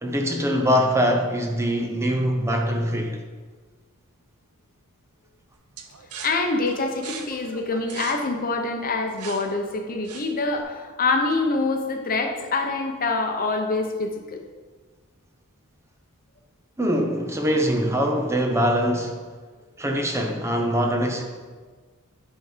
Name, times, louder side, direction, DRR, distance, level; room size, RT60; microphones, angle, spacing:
voice 1, 0.0-3.2 16.8-19.2 19.8-21.2, equal, 10° right, 2 dB, 0.6 m, -23 dB
sound 1, 5.8-10.6, right 6 dB, 85° right, 0.8 m, -40 dB
voice 2, 6.2-14.4, left 3 dB, 40° left, 4 dB, 0.8 m, -25 dB
10.0 x 4.2 x 4.9 m, 1.5 s
head